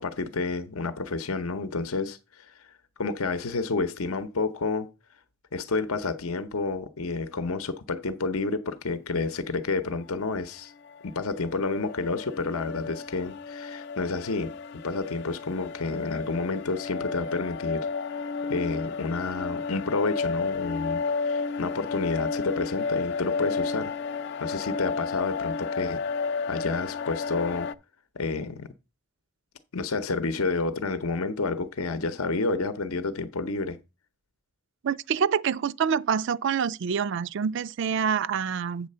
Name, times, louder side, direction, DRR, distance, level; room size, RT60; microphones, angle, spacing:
voice 1, 0.0-4.9 5.5-10.7 11.0-17.9 18.1-18.2 18.5-23.9 24.4-26.0 26.5-27.7 28.1-28.7 29.7-33.8, left 3 dB, 75° left, 0.8 m, -30 dB
sound 1, 10.9-27.7, left 4 dB, 50° left, 0.3 m, -32 dB
voice 2, 34.8-38.9, right 7 dB, 55° right, 0.3 m, -26 dB
8.1 x 4.1 x 6.6 m
head